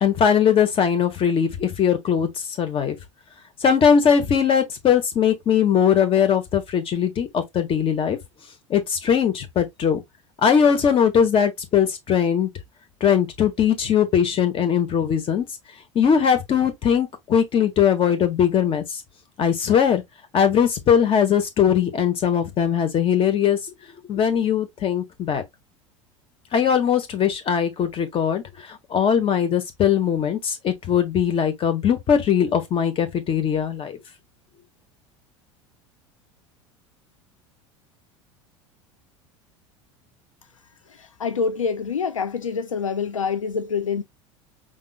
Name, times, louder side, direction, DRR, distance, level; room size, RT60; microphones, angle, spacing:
voice 1, 0.0-2.3 2.6-3.0 3.6-8.2 8.7-10.0 10.4-12.5 13.0-15.4 15.9-19.0 19.4-20.0 20.3-23.6 24.1-25.4 26.5-34.0, left 8 dB, 35° left, 1.4 m, -20 dB
voice 2, 41.0-44.0, left 5 dB, 85° left, 0.5 m, -26 dB
5.4 x 3.7 x 2.2 m
figure-of-eight pair, 75°, 16 cm